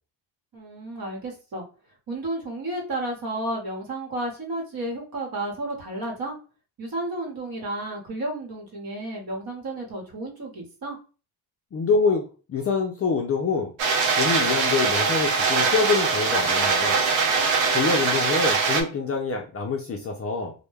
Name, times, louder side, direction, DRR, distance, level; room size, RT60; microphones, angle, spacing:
voice 1, 0.5-1.6 2.1-6.4 6.8-11.0, right 1 dB, 50° right, 0 dB, 1.1 m, -32 dB
voice 2, 11.7-13.7 14.2-17.0 17.7-20.5, left 4 dB, 35° left, 1 dB, 0.4 m, -25 dB
sound 1, 13.8-18.8, right 4 dB, 70° right, 0.7 m, -22 dB
2.1 x 2.1 x 3.1 m, 0.34 s
cardioid pair, 110°, 46 cm